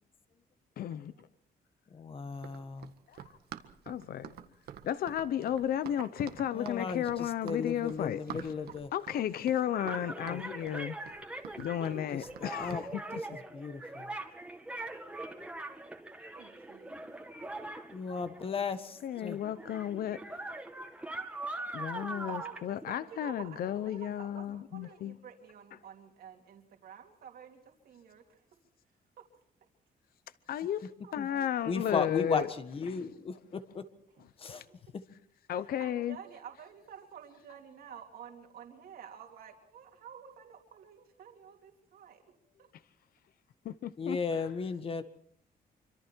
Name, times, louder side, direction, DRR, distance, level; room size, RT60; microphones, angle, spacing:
voice 1, 0.8-1.1 3.1-3.3 3.9-4.3 4.8-8.5 8.9-11.0 11.6-13.2 19.0-20.4 21.7-25.2 30.5-32.5 35.5-36.2 43.6-44.2, left 10 dB, 70° left, 0.8 m, -33 dB
voice 2, 1.9-2.9 6.5-8.9 10.3-10.5 12.1-12.8 13.3-14.1 17.9-19.4 31.2-31.3 31.7-33.8 34.4-34.6 44.0-45.0, left 5 dB, 35° left, 1.6 m, -35 dB
Run, 2.3-12.9, right 10 dB, 90° right, 1.7 m, -48 dB
sound 1, 9.6-18.8 19.1-23.4, right 2 dB, 10° right, 2.1 m, -42 dB
voice 3, 11.7-12.7 15.5-16.0 16.3-17.0 22.3-28.4 29.2-29.3 31.0-32.2 34.2-34.3 35.5-42.3 42.6-42.7, right 8 dB, 70° right, 3.1 m, -51 dB
26.5 x 25.5 x 4.6 m
cardioid pair, 155°, 16 cm